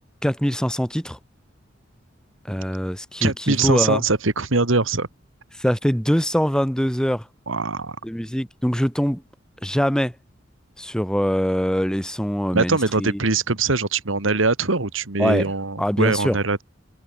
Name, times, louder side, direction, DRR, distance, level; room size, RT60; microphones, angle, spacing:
voice 1, 0.2-1.2 2.5-4.0 5.6-7.2 8.0-9.2 9.6-10.1 10.8-13.2 15.2-15.5 15.8-16.4, equal, 5° left, 2.5 m, -23 dB
voice 2, 3.2-5.1 7.5-8.0 12.5-16.6, right 3 dB, 85° right, 2.0 m, -22 dB
head